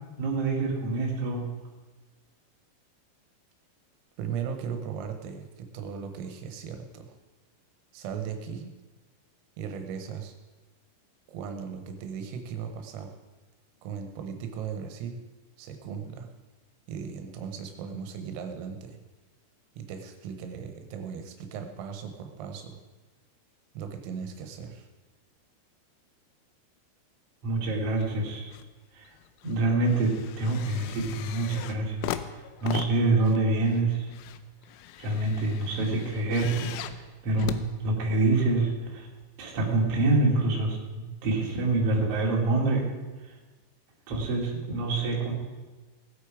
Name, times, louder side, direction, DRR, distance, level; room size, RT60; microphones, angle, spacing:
voice 1, 0.2-1.4 27.4-28.5 28.9-29.1 29.4-32.1 32.6-34.1 35.0-39.1 39.4-42.9 44.1-45.3, right 2 dB, 35° right, -2 dB, 2.7 m, -26 dB
voice 2, 4.2-7.2 7.9-8.7 9.6-10.4 11.3-13.1 13.8-15.2 15.6-16.3 16.9-19.0 19.8-22.8 23.8-24.9, right 7 dB, 80° right, 5 dB, 3.7 m, -37 dB
sound 1, 28.0-28.7 29.0-38.4 39.2-39.3, left 12 dB, 90° left, 3.4 m, -40 dB
18.5 x 8.2 x 4.9 m, 1.2 s
omnidirectional pair, 6.0 m